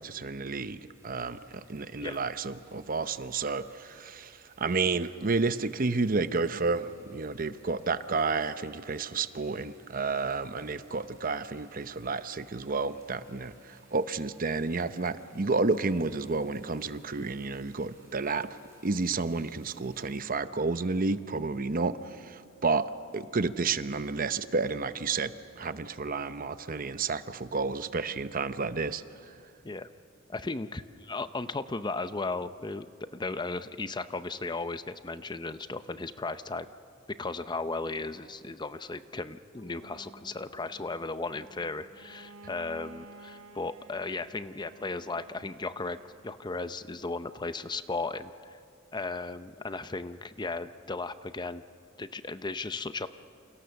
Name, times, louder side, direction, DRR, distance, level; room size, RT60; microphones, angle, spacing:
voice 1, 0.0-18.5 18.8-22.9 23.1-29.3, right 4 dB, 45° right, 12 dB, 0.8 m, -31 dB
sound 1, 0.9-20.2, right 2 dB, 15° right, 7.8 m, -63 dB
voice 2, 30.3-36.7 37.2-46.0 46.2-48.6 48.9-51.6 52.0-53.1, left 3 dB, 20° left, 12 dB, 0.6 m, -36 dB
sound 2, 39.5-44.4, right 1 dB, 55° left, 3.2 m, -58 dB
Bowed string instrument, 41.9-46.6, right 2 dB, 70° right, 1.6 m, -52 dB
29.0 x 28.0 x 7.0 m, 2.5 s
head